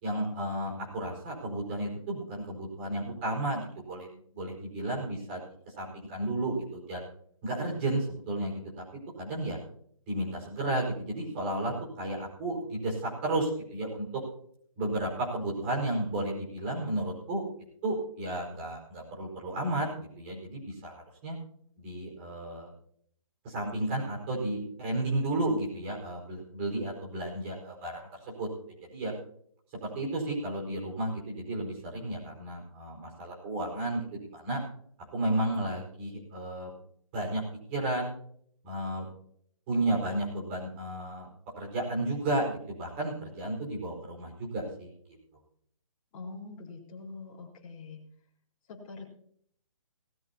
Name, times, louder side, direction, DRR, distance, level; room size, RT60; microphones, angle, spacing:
voice 1, 0.0-5.4 5.8-7.0 7.4-9.6 10.1-14.2 14.8-17.4 17.8-21.4 21.8-22.7 23.4-28.5 28.9-29.1 29.8-34.6 35.1-36.7 37.1-37.4 37.7-38.1 38.6-39.1 39.7-41.3 41.6-44.9, right 1 dB, 20° right, -2 dB, 4.8 m, -33 dB
voice 2, 46.1-48.0 48.7-49.1, left 3 dB, 20° left, -4 dB, 3.9 m, -44 dB
19.0 x 14.5 x 2.8 m, 0.64 s
hypercardioid pair, 170°, 18 cm